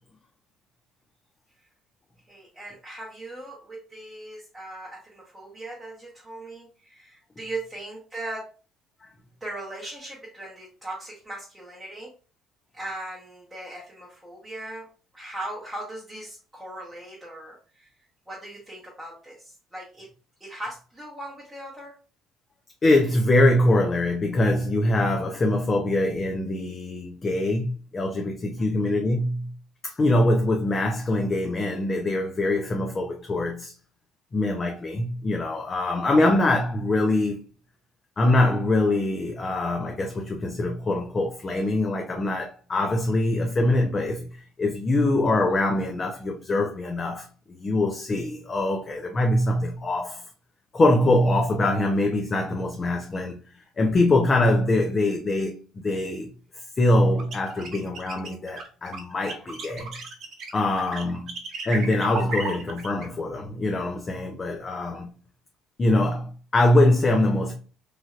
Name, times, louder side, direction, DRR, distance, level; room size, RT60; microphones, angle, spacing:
voice 1, 2.3-8.4 9.4-12.1 12.7-14.9 15.1-17.9 18.3-20.1 20.4-22.0, right 2 dB, 10° right, 0.9 m, -39 dB
voice 2, 22.8-29.5 29.8-33.7 34.3-37.4 38.2-50.2 50.7-53.4 53.8-56.3 56.8-59.9 60.5-61.4 61.7-65.1 65.8-67.5, left 1 dB, 25° left, 0.4 m, -23 dB
sound 1, 57.2-63.1, right 3 dB, 50° right, 0.9 m, -34 dB
3.1 x 2.6 x 2.3 m
cardioid pair, 125°, 0 cm